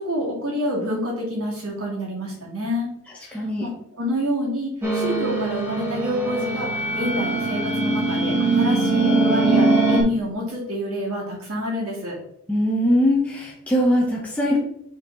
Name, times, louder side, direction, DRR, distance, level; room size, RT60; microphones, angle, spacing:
voice 1, 0.0-2.9 3.2-12.2, equal, 70° right, -3 dB, 2.7 m, -27 dB
voice 2, 3.3-3.7 12.5-14.6, equal, 5° left, -4 dB, 0.9 m, -21 dB
sound 1, 4.8-10.0, right 3 dB, 10° right, 1.5 m, -21 dB
5.9 x 4.5 x 3.9 m, 0.72 s
head